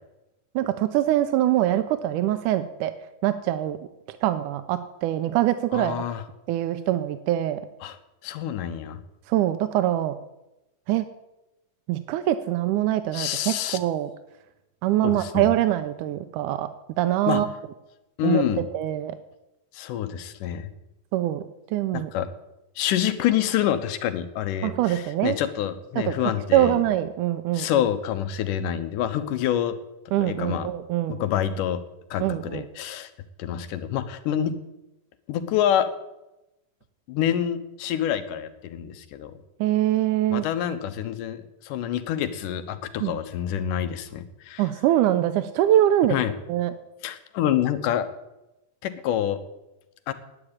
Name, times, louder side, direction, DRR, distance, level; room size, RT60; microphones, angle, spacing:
voice 1, 0.6-2.9 3.2-3.8 4.1-6.0 6.5-7.6 9.3-10.2 10.9-11.1 11.9-14.1 14.8-16.7 17.0-17.5 18.2-19.2 21.1-21.4 21.7-22.1 24.6-25.4 26.0-26.1 26.5-27.9 30.1-31.2 32.2-32.6 39.6-40.5 43.0-43.1 44.6-46.2 46.5-46.7, right 13 dB, 85° right, 10 dB, 2.1 m, -23 dB
voice 2, 5.7-6.2 7.8-8.0 8.2-9.0 13.1-13.8 15.0-15.5 17.3-17.4 18.2-18.7 19.7-20.7 21.9-22.3 22.8-26.8 27.5-29.8 30.2-30.7 31.1-31.8 32.1-33.1 33.4-34.6 35.3-35.9 37.1-39.3 40.3-44.6 46.1-46.3 47.0-48.1 48.8-49.4 50.1-50.2, left 10 dB, 85° left, 10 dB, 2.5 m, -27 dB
9.9 x 8.7 x 9.7 m, 0.94 s
omnidirectional pair, 3.6 m